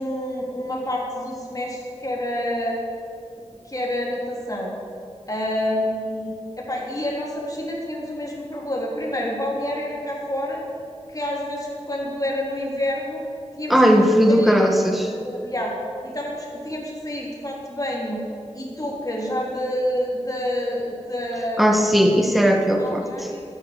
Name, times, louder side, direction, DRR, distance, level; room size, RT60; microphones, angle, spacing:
voice 1, 0.0-2.8 3.7-4.7 5.3-10.6 11.1-13.2 13.6-14.6 15.0-15.7 16.0-18.2 18.5-21.9 22.8-23.4, left 1 dB, 30° left, -3 dB, 3.6 m, -28 dB
voice 2, 13.7-15.1 21.6-23.3, equal, ahead, 3 dB, 1.4 m, -17 dB
12.5 x 10.5 x 7.0 m, 2.5 s
wide cardioid pair, 55°, 12 cm